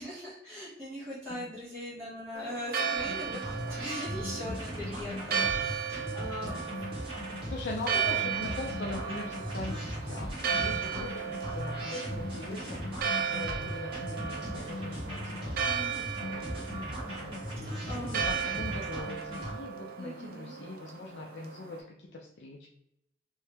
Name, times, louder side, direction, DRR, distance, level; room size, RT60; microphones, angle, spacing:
voice 1, 0.0-7.0 7.7-8.1 15.6-16.1 17.5-18.5 20.0-20.5, left 1 dB, 5° left, -13 dB, 1.1 m, -41 dB
Church bell, 2.3-21.8, right 7 dB, 50° right, 0.5 m, -35 dB
sound 1, 2.9-19.5, equal, 30° right, 1.3 m, -38 dB
voice 2, 6.2-6.6 7.4-16.6 17.1-22.7, left 2 dB, 70° left, -1 dB, 0.4 m, -42 dB
3.1 x 2.7 x 3.3 m, 0.81 s
head